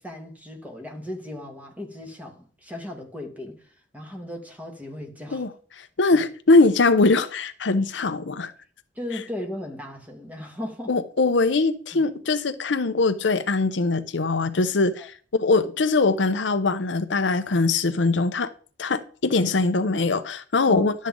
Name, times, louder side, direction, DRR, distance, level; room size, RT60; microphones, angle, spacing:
voice 1, 0.0-5.4 6.1-6.2 9.0-10.9 11.9-12.0 15.0-15.1 20.7-20.9, left 1 dB, 10° right, 1.8 m, -37 dB
voice 2, 5.8-8.5 10.9-18.5 18.8-20.9, left 3 dB, 85° left, 0.7 m, -22 dB
11.5 x 7.4 x 3.8 m
head